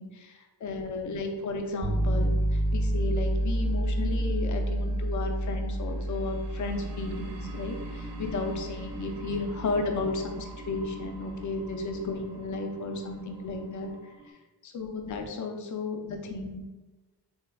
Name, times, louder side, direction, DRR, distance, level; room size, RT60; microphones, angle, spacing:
voice 1, 0.0-13.9 14.6-16.6, left 3 dB, 45° left, 4 dB, 0.5 m, -34 dB
sound 1, 1.4-14.3, right 2 dB, 70° right, 0.7 m, -47 dB
sound 2, 1.8-11.7, right 1 dB, 40° right, 0.9 m, -30 dB
3.4 x 2.8 x 2.2 m, 1.2 s
cardioid pair, 65°, 43 cm